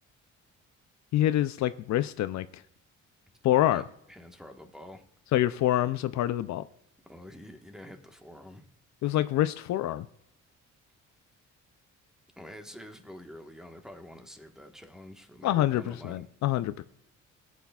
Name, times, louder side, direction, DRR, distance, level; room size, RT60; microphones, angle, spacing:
voice 1, 1.1-2.5 3.4-3.8 5.3-6.6 9.0-10.1 15.4-16.8, left 13 dB, 65° left, 0.4 m, -26 dB
voice 2, 3.6-5.0 7.1-8.7 12.4-16.3, left 1 dB, ahead, 1.3 m, -47 dB
17.0 x 8.2 x 2.3 m
cardioid pair, 90°, 30 cm